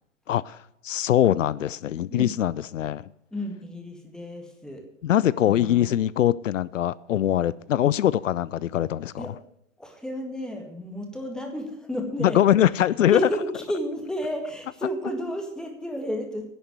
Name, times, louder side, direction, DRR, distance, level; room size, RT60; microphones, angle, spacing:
voice 1, 0.3-0.6 0.8-3.0 5.0-9.3 12.2-13.2, left 11 dB, 75° left, 0.5 m, -22 dB
voice 2, 3.3-4.8 5.4-5.9 9.2-9.3 9.8-12.6 13.1-16.5, equal, ahead, 1.9 m, -32 dB
11.0 x 6.6 x 9.3 m
hypercardioid pair, 120°, 39 cm